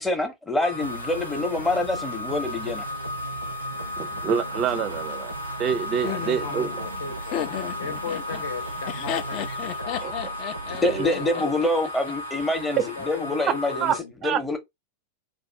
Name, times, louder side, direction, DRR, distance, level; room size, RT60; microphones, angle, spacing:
voice 1, 0.0-2.8 10.8-13.9 14.2-14.6, left 2 dB, 5° left, 0.7 m, -26 dB
sound 1, 0.6-14.0, left 1 dB, 85° left, 1.0 m, -35 dB
sound 2, 0.8-11.3, right 2 dB, 90° right, 0.5 m, -38 dB
voice 2, 4.0-5.3 5.6-6.7 10.0-10.1 10.8-11.1 13.8-13.9 14.2-14.4, right 7 dB, 35° right, 0.4 m, -26 dB
voice 3, 6.0-10.4 10.7-11.6 12.3-14.1, left 4 dB, 65° left, 0.9 m, -37 dB
Laughter, 6.0-12.1, left 11 dB, 40° left, 0.4 m, -34 dB
2.5 x 2.4 x 3.1 m
figure-of-eight pair, 90°, 0 cm